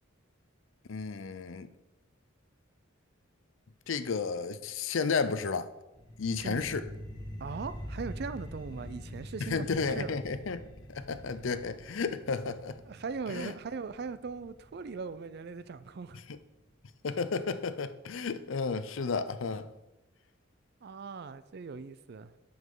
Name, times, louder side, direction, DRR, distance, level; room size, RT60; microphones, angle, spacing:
voice 1, 0.9-1.7 3.9-5.7 6.2-6.8 9.5-10.6 10.9-12.8 13.3-13.5 17.0-19.7, left 4 dB, 70° left, 0.5 m, -32 dB
sound 1, 5.9-17.0, equal, 20° left, 1.2 m, -45 dB
voice 2, 7.4-10.2 12.8-16.2 20.8-22.3, right 4 dB, 50° right, 0.4 m, -40 dB
9.3 x 7.1 x 3.9 m
head